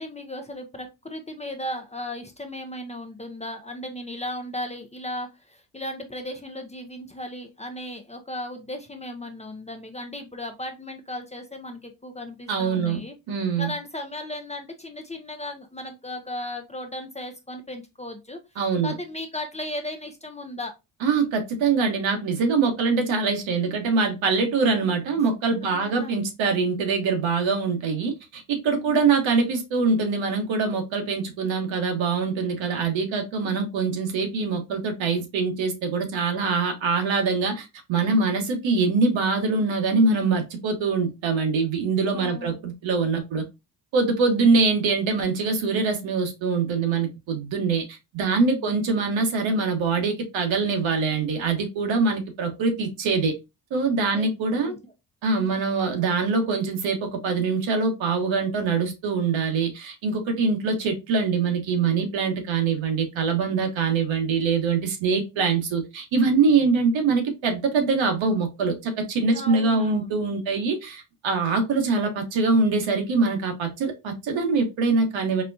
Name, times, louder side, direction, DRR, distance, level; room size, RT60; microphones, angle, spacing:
voice 1, 0.0-13.1 13.6-18.4 18.8-20.7 25.6-26.2 28.8-29.0 42.1-42.6 48.5-48.7 54.1-54.3 54.6-54.8 55.3-55.6 69.3-70.1, left 1 dB, 15° left, 5 dB, 0.6 m, -36 dB
voice 2, 12.5-13.0 13.3-13.7 18.6-18.9 21.0-43.4 43.9-47.8 48.1-53.3 53.7-54.7 55.2-75.4, right 4 dB, 70° right, 5 dB, 1.1 m, -24 dB
4.1 x 2.2 x 2.6 m, 0.24 s
cardioid pair, 80°, 47 cm